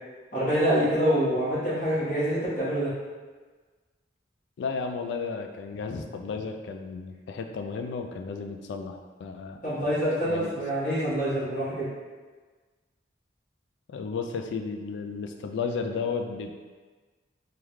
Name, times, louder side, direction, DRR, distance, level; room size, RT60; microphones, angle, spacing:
voice 1, 0.3-2.9 9.6-11.9, equal, 45° left, -11 dB, 1.4 m, -26 dB
voice 2, 4.6-9.6 10.3-10.5 13.9-16.5, left 5 dB, 80° left, 5 dB, 0.3 m, -33 dB
3.5 x 2.3 x 3.0 m, 1.4 s
head